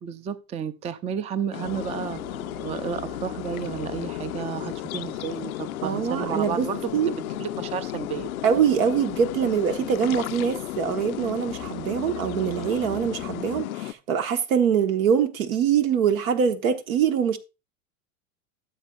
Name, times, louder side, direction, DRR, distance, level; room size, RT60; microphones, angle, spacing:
voice 1, 0.0-8.3, right 7 dB, 15° right, 0.4 m, -32 dB
sound 1, 1.5-13.9, left 15 dB, 85° left, 0.5 m, -34 dB
sound 2, 1.6-13.6, right 7 dB, 55° right, 1.7 m, -46 dB
voice 2, 5.8-6.7 6.9-7.1 8.4-17.4, right 7 dB, 75° right, 1.3 m, -23 dB
12.5 x 7.5 x 2.4 m
hypercardioid pair, 95°, 41 cm